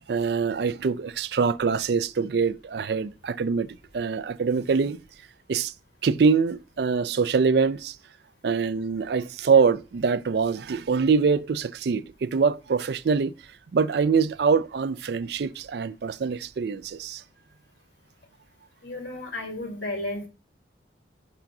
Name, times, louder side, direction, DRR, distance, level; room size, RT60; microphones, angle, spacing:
voice 1, 0.1-3.7 3.9-5.0 5.5-5.7 6.0-8.0 8.4-13.3 13.7-17.2, right 5 dB, 60° right, 0.4 m, -24 dB
voice 2, 18.8-20.3, left 2 dB, 85° left, 2.1 m, -33 dB
5.8 x 3.8 x 5.8 m
head